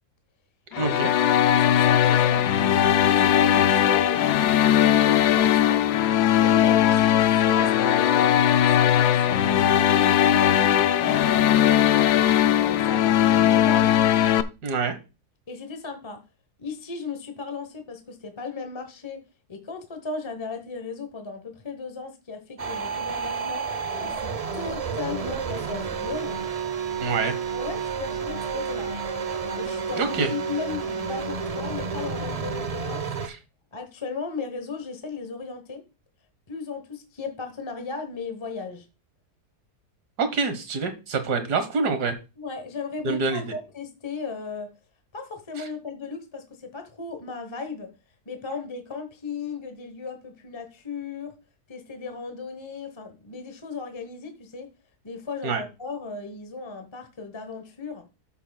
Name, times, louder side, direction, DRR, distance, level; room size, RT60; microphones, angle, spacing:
sound 1, 0.7-14.4, left 11 dB, 80° left, 1.2 m, -19 dB
voice 1, 0.8-1.1 14.6-15.0 27.0-27.4 30.0-30.3 33.2-33.4 40.2-42.2 43.0-43.4 55.4-55.6, right 4 dB, 85° right, 8 dB, 1.8 m, -26 dB
voice 2, 1.3-5.8 6.3-10.5 11.0-14.0 15.5-16.2 16.6-19.2 19.5-23.7 24.0-26.4 27.5-28.9 29.5-33.2 33.7-35.8 36.5-38.9 42.4-44.7 45.1-47.9 48.3-51.3 51.7-54.7 55.0-58.1, left 4 dB, 20° left, 6 dB, 1.0 m, -36 dB
sound 2, 22.6-33.3, right 5 dB, 45° right, 0.5 m, -30 dB
13.0 x 6.9 x 2.3 m, 0.30 s
omnidirectional pair, 1.7 m